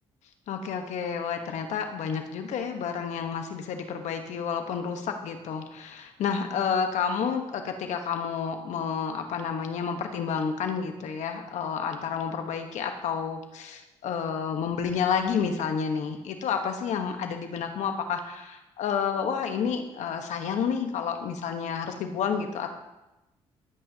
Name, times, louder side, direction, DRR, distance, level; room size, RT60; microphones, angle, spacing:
voice 1, 0.5-22.7, left 6 dB, 75° left, 5 dB, 1.2 m, -30 dB
16.0 x 8.7 x 2.9 m, 0.98 s
supercardioid pair, 70°, 12 cm